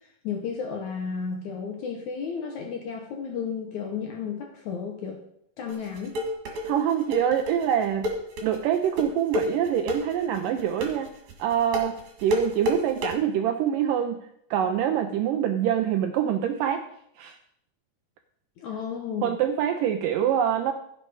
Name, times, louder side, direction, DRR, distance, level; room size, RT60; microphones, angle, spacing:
voice 1, 0.0-5.2 5.6-6.2 18.6-19.4, left 6 dB, 70° left, 3 dB, 1.8 m, -33 dB
sound 1, 5.7-13.1, left 1 dB, 55° right, 3.2 m, -29 dB
voice 2, 6.6-8.1 8.4-11.1 11.4-16.9 17.2-17.4 19.2-20.7, right 9 dB, 80° right, 7 dB, 1.9 m, -25 dB
15.5 x 6.7 x 4.7 m, 0.73 s
omnidirectional pair, 4.5 m